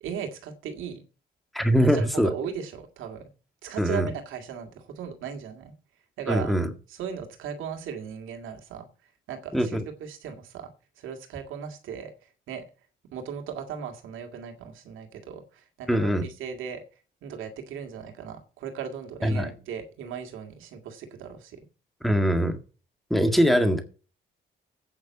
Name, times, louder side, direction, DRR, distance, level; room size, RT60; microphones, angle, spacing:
voice 1, 0.0-1.0 1.8-3.2 3.6-5.7 6.2-6.5 6.9-8.9 9.3-10.7 11.0-12.6 13.1-16.8 17.2-21.7, right 7 dB, 85° right, 2.1 m, -37 dB
voice 2, 1.5-2.3 3.8-4.1 6.3-6.7 9.5-9.8 15.9-16.2 19.2-19.5 22.0-22.6 23.1-23.8, equal, ahead, 1.8 m, -22 dB
8.8 x 5.9 x 8.2 m
cardioid pair, 90°, 20 cm